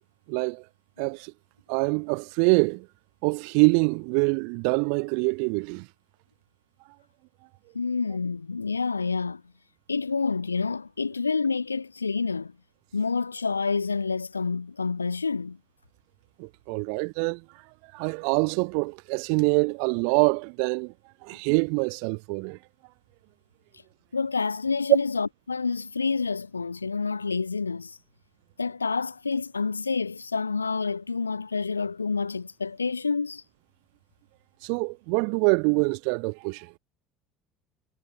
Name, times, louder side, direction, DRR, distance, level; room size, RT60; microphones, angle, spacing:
voice 1, 0.3-0.6 1.0-1.3 1.7-2.9 3.2-5.9 16.4-17.4 17.9-20.9 21.2-22.6 34.6-36.7, right 40 dB or more, 60° right, 7.2 m, -25 dB
voice 2, 7.7-9.4 9.9-12.5 12.9-15.6 24.1-28.0 28.6-33.4, left 4 dB, 85° left, 3.8 m, -28 dB
figure-of-eight pair, 65°, 0 cm